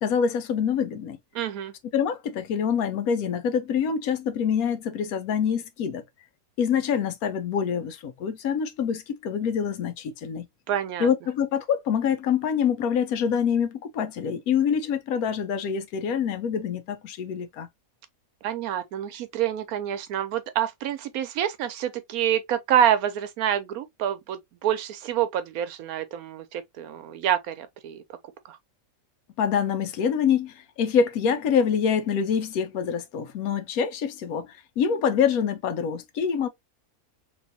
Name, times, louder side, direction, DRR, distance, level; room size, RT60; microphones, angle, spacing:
voice 1, 0.0-1.2 1.9-6.0 6.6-10.5 11.0-17.7 29.4-36.5, left 7 dB, 80° left, 1.1 m, -25 dB
voice 2, 1.3-1.7 10.7-11.1 18.4-28.0 28.5-28.6, right 10 dB, 80° right, 1.1 m, -27 dB
3.1 x 3.0 x 2.6 m
omnidirectional pair, 1.5 m